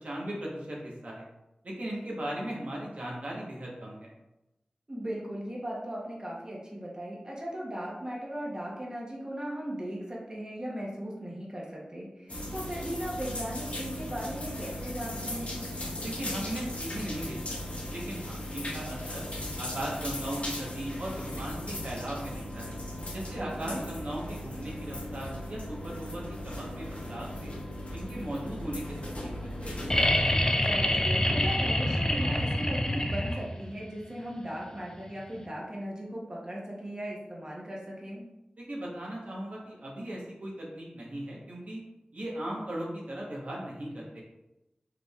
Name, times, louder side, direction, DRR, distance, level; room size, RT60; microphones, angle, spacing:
voice 1, 0.0-1.3 1.6-4.1 16.0-17.4 17.7-19.3 19.6-22.8 23.1-27.5 27.9-29.9 38.6-41.8 42.1-44.2, right 1 dB, 60° right, -3 dB, 1.0 m, -38 dB
voice 2, 4.9-15.6 23.4-23.8 30.6-38.2, equal, 30° right, -4 dB, 0.9 m, -37 dB
sound 1, 12.3-30.3, left 1 dB, 55° left, 1.0 m, -37 dB
sound 2, 29.9-33.7 35.4-35.5, left 1 dB, 25° left, 0.4 m, -26 dB
4.9 x 3.4 x 2.3 m, 0.95 s
wide cardioid pair, 60°, 3 cm